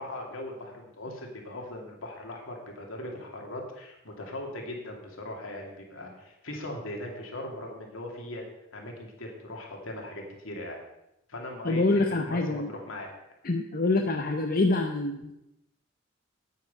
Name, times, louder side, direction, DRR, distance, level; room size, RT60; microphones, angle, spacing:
voice 1, 0.0-8.5 8.7-10.8 11.3-13.1, left 1 dB, 75° left, 1 dB, 2.5 m, -39 dB
voice 2, 11.6-12.7 13.4-15.3, left 2 dB, 45° left, 3 dB, 0.7 m, -26 dB
9.3 x 9.3 x 5.4 m, 0.87 s
head